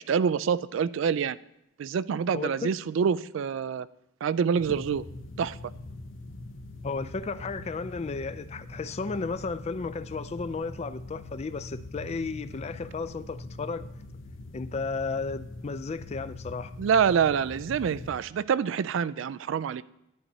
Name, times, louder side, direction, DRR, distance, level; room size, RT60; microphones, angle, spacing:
voice 1, 0.1-1.4 1.8-3.9 4.2-5.0 5.4-5.6 16.8-19.8, right 7 dB, 70° right, 0.3 m, -26 dB
voice 2, 2.3-2.7 6.8-13.8 14.5-16.7, left 4 dB, 35° left, 0.4 m, -34 dB
sound 1, 4.6-18.3, left 2 dB, 70° left, 0.8 m, -43 dB
12.0 x 9.7 x 2.7 m
head